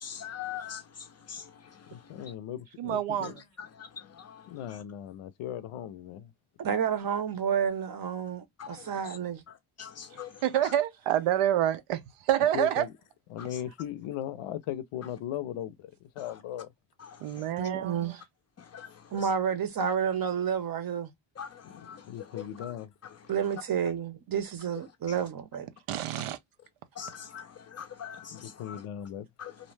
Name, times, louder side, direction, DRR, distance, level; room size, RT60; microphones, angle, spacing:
voice 1, 0.0-2.3 3.7-4.8 8.6-8.9 9.5-10.4 13.4-13.5 16.2-16.4 17.0-17.5 18.6-19.0 21.4-22.7 23.0-23.1 27.0-28.8 29.4-29.5, left 8 dB, 35° left, 0.4 m, -43 dB
voice 2, 1.9-3.3 4.5-6.3 12.5-12.9 13.3-16.7 21.6-22.9 28.3-29.3, left 11 dB, 80° left, 0.6 m, -38 dB
voice 3, 2.8-3.4 10.4-12.9 17.2-18.2 25.9-26.4, right 11 dB, 85° right, 0.6 m, -27 dB
voice 4, 6.6-9.4 17.6-18.2 19.1-21.1 23.3-25.7, right 7 dB, 45° right, 0.7 m, -30 dB
2.6 x 2.0 x 3.1 m
cardioid pair, 130°, 50 cm